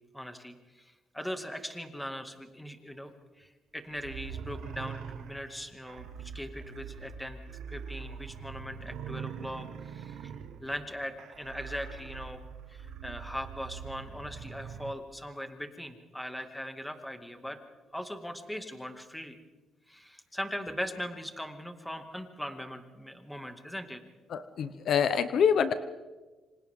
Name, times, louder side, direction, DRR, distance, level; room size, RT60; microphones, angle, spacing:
voice 1, 0.1-0.8 1.1-3.1 3.4-7.4 7.7-10.2 10.6-12.4 12.7-17.6 17.9-19.4 19.9-24.0, equal, 5° left, 5 dB, 2.1 m, -40 dB
sound 1, 3.9-14.9, right 6 dB, 80° right, 1.5 m, -43 dB
voice 2, 24.3-25.7, left 7 dB, 60° left, 11 dB, 0.9 m, -26 dB
28.0 x 26.0 x 3.7 m, 1.2 s
cardioid pair, 115°, 0 cm